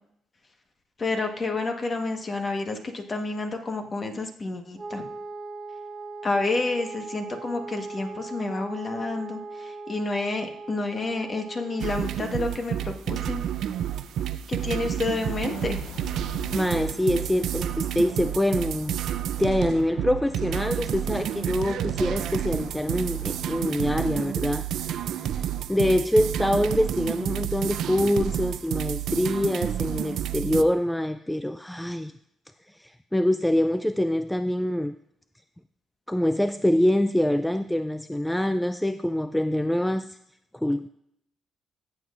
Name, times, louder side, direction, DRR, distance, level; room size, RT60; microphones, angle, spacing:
voice 1, 1.0-5.0 6.2-13.4 14.5-15.8, left 3 dB, 35° left, 5 dB, 1.3 m, -29 dB
Wind instrument woodwind instrument, 4.8-12.2, right 3 dB, 15° right, 0.7 m, -39 dB
sound 1, 11.8-30.6, right 10 dB, 75° right, 0.4 m, -30 dB
sound 2, 15.2-24.3, left 6 dB, 75° left, 0.8 m, -44 dB
voice 2, 16.5-19.0 19.4-32.1 32.7-35.0 36.1-40.2 40.5-40.9, left 1 dB, 5° left, 10 dB, 0.3 m, -25 dB
14.5 x 7.7 x 2.5 m, 0.74 s
cardioid pair, 90°, 0 cm